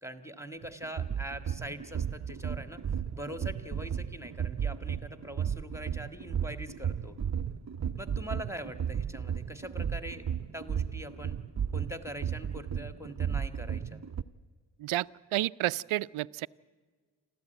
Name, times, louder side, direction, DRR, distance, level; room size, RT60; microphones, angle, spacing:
voice 1, 0.0-2.8 3.1-7.2 8.0-10.3 10.5-11.4 11.7-14.0, equal, 5° right, 9 dB, 1.7 m, -43 dB
sound 1, 0.6-14.2, right 8 dB, 35° right, 0.6 m, -34 dB
voice 2, 14.8-16.5, right 16 dB, 75° right, 18 dB, 0.6 m, -31 dB
28.0 x 13.5 x 9.2 m, 1.5 s
cardioid pair, 60°, 49 cm